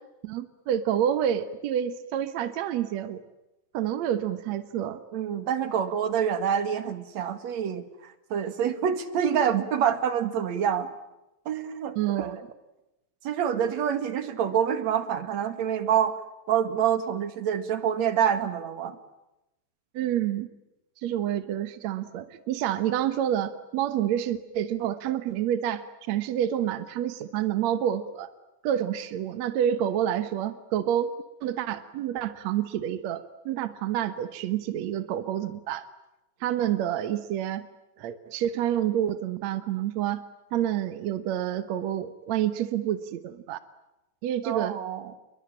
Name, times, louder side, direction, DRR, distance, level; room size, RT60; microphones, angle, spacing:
voice 1, 0.2-3.2 3.7-5.0 11.9-12.5 19.9-20.5 21.0-28.3 28.6-31.1 31.4-35.9 36.4-37.7 38.0-40.2 40.5-43.6 44.2-44.8, right 10 dB, 70° right, 12 dB, 1.7 m, -28 dB
voice 2, 5.1-10.9 11.5-12.4 13.2-16.2 16.5-19.0 44.4-45.2, right 8 dB, 50° right, 11 dB, 2.5 m, -27 dB
29.5 x 22.5 x 8.8 m, 0.94 s
omnidirectional pair, 4.9 m